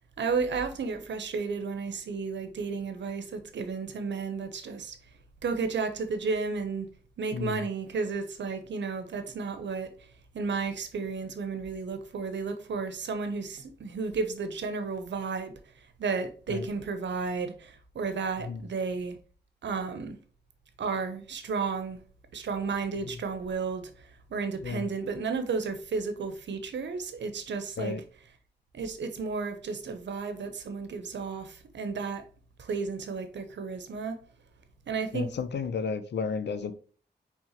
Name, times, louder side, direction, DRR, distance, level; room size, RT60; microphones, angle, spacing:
voice 1, 0.2-5.0 5.4-6.9 7.2-10.1 10.3-19.2 19.6-20.2 20.8-22.0 22.3-28.0 28.7-32.2 32.6-34.2 34.9-35.3, right 4 dB, 90° right, 0.8 m, -33 dB
voice 2, 7.3-7.6 16.5-16.7 18.4-18.6 24.6-24.9 27.8-28.0 35.1-36.7, left 5 dB, 75° left, 0.6 m, -32 dB
4.6 x 3.6 x 2.9 m
cardioid pair, 50°, 18 cm